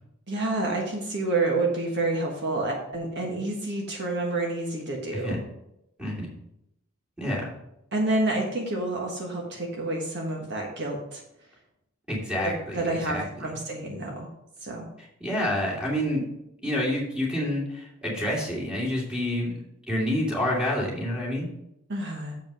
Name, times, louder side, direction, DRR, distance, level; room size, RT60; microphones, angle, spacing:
voice 1, 0.3-5.4 7.9-11.2 12.4-14.3 14.6-14.9 21.9-22.3, right 2 dB, 55° right, 0 dB, 1.5 m, -29 dB
voice 2, 7.2-7.5 12.1-13.2 15.0-16.2 16.6-19.5 19.9-21.5, left 1 dB, 5° right, -5 dB, 2.8 m, -28 dB
7.5 x 5.2 x 6.1 m, 0.82 s
head